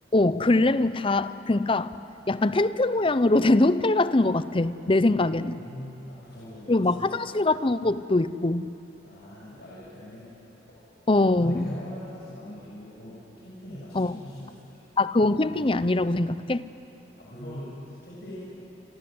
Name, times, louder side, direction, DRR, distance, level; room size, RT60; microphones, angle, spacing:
voice 1, 0.1-2.0 2.3-5.6 6.7-8.7 11.1-11.7 13.9-14.1 15.0-16.7, left 2 dB, 30° left, 14 dB, 0.7 m, -23 dB
voice 2, 5.2-7.2 9.0-10.4 11.3-14.7 17.2-18.4, left 1 dB, 65° left, -7 dB, 7.0 m, -41 dB
28.5 x 25.5 x 7.9 m, 2.9 s
head